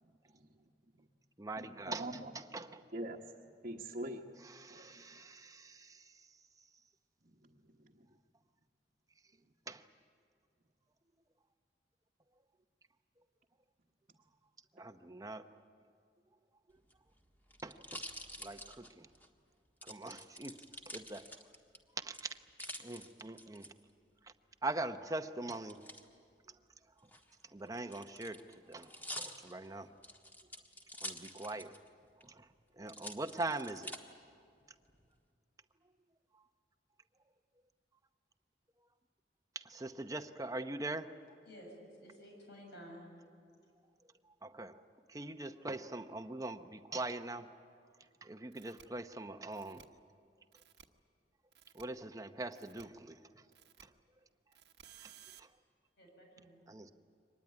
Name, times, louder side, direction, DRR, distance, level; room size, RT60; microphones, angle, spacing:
voice 1, 0.0-0.5 0.9-1.0 1.6-2.3 2.9-3.2 3.6-4.3 4.7-5.0 7.2-8.1, right 1 dB, 45° right, 1.2 m, -45 dB
voice 2, 1.4-2.1 2.3-2.8 4.5-6.3 9.7-9.8 14.7-15.4 17.6-18.0 18.4-19.1 19.8-21.3 22.0-22.4 22.8-23.7 24.2-24.3 24.6-25.8 27.5-28.9 29.2-29.9 31.0-31.7 32.2-32.5 32.8-33.9 39.5-41.1 44.4-44.8 45.1-47.5 48.2-49.9 51.7-53.4 53.8-53.9 55.0-55.1 55.4-55.5 56.7-56.9, right 2 dB, 20° right, 0.8 m, -42 dB
sound 1, 16.8-19.3 19.8-21.8 22.1-23.7 25.5-26.0 27.0-31.9 32.2-32.3 32.9-34.0 34.6-35.1, equal, 10° left, 1.6 m, -48 dB
voice 3, 41.4-43.1 56.0-56.7, equal, 70° left, 7.0 m, -53 dB
sound 2, 48.5-48.8 49.5-49.8 50.5-50.8 51.5-51.8 52.5-52.8 53.5-53.8 54.5-55.4, right 9 dB, 70° right, 1.2 m, -58 dB
24.0 x 19.5 x 9.6 m
head